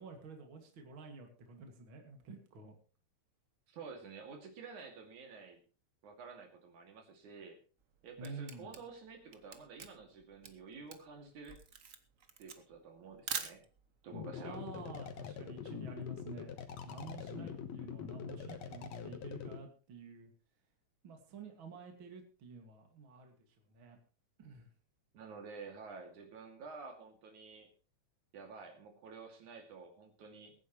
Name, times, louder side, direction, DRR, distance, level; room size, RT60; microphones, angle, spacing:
voice 1, 0.0-2.8 8.2-8.7 14.3-16.6 16.8-20.3 21.0-23.3 23.7-24.0 24.4-24.7, right 3 dB, 45° right, 4 dB, 2.8 m, -50 dB
voice 2, 3.7-5.6 6.0-7.6 8.0-11.6 12.4-13.6 14.0-14.6 25.1-27.7 28.3-30.5, right 4 dB, 80° right, 3 dB, 3.9 m, -50 dB
Camera, 7.8-14.0, right 6 dB, 60° right, 0.8 m, -45 dB
sound 1, 14.1-19.6, left 7 dB, 65° left, 2.4 m, -44 dB
23.0 x 9.6 x 3.1 m, 0.36 s
omnidirectional pair, 3.4 m